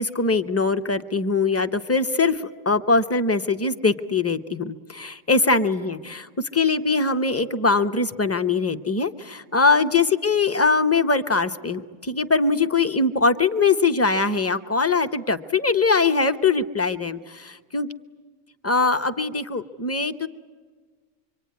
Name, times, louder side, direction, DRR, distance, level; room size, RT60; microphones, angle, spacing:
voice 1, 0.0-17.9 18.6-20.3, left 4 dB, 15° left, 8 dB, 0.5 m, -22 dB
25.5 x 24.5 x 9.5 m, 1.5 s
omnidirectional pair, 1.4 m